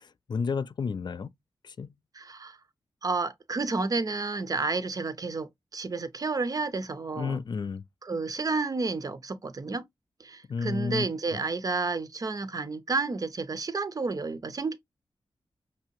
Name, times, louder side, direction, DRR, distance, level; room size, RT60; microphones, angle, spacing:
voice 1, 0.0-1.3 1.6-1.9 7.1-7.9 10.5-11.1, left 5 dB, 50° left, 0.4 m, -31 dB
voice 2, 2.2-2.6 3.0-7.4 8.0-9.8 10.2-14.8, right 3 dB, 40° right, 0.6 m, -31 dB
5.8 x 2.7 x 2.9 m
wide cardioid pair, 140°, 10 cm